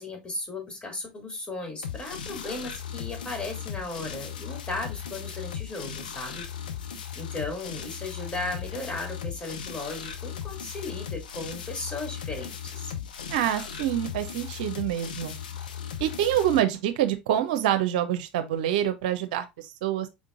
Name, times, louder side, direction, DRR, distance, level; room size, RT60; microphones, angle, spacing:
voice 1, 0.0-6.5 7.1-12.9, left 2 dB, 25° left, 2.7 m, -36 dB
sound 1, 1.8-16.6, left 8 dB, 85° left, 0.6 m, -37 dB
voice 2, 13.3-15.3 16.0-20.1, right 11 dB, 70° right, 0.6 m, -26 dB
5.0 x 3.7 x 2.5 m
hypercardioid pair, 75°, 5 cm